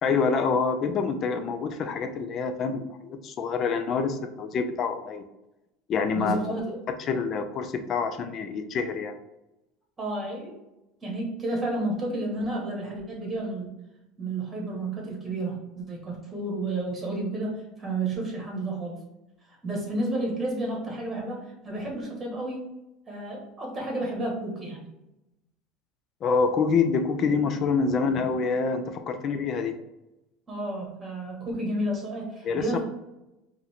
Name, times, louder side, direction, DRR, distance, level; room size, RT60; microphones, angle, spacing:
voice 1, 0.0-5.3 5.9-6.4 7.1-9.1 26.2-29.8 32.4-32.8, left 5 dB, 35° left, 7 dB, 0.5 m, -26 dB
voice 2, 6.1-6.8 10.0-10.6 11.0-13.7 14.2-19.0 19.6-22.7 23.1-24.9 30.5-32.8, right 2 dB, 15° right, -1 dB, 1.5 m, -31 dB
5.0 x 2.6 x 3.5 m, 0.93 s
cardioid pair, 155°, 0 cm